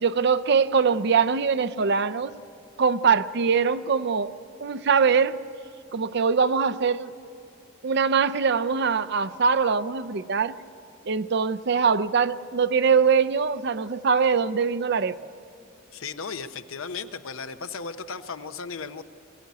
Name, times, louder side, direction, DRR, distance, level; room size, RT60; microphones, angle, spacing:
voice 1, 0.0-2.3 2.8-4.3 4.6-5.3 5.9-7.1 7.8-10.6 11.1-15.2, right 5 dB, 55° right, 0.6 m, -22 dB
voice 2, 15.9-19.0, left 5 dB, 85° left, 0.9 m, -35 dB
22.0 x 15.5 x 9.4 m
head